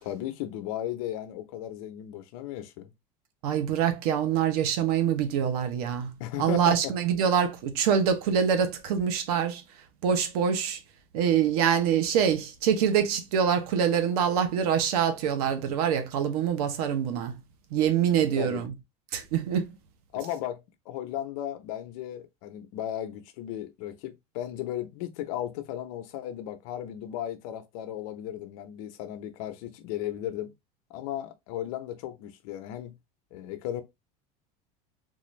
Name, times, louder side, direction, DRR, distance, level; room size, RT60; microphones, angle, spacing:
voice 1, 0.0-2.9 6.2-6.9 18.4-18.6 20.1-30.5 30.9-33.0 33.3-33.8, left 12 dB, 70° left, 0.7 m, -35 dB
voice 2, 3.4-6.1 6.4-9.6 10.0-10.8 11.1-17.4 17.7-18.7 19.1-19.7, right 8 dB, 80° right, 0.9 m, -25 dB
3.8 x 2.5 x 3.1 m
cardioid pair, 160°, 19 cm